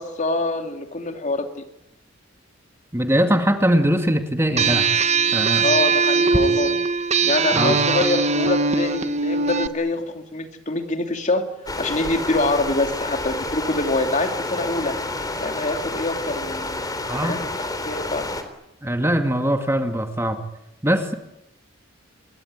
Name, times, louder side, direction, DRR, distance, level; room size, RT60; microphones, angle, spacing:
voice 1, 0.0-1.6 5.6-6.8 7.2-11.4 11.8-14.9 15.4-17.5 17.8-18.2, left 2 dB, 35° left, 5 dB, 3.0 m, -25 dB
voice 2, 2.9-5.7 7.5-7.8 17.1-17.4 18.8-20.4 20.8-21.1, equal, 10° right, 5 dB, 2.3 m, -21 dB
sound 1, 4.6-9.7, right 4 dB, 35° right, 1.3 m, -20 dB
sound 2, 11.7-18.4, left 2 dB, 20° left, 3.7 m, -29 dB
27.5 x 23.0 x 9.6 m, 0.84 s
head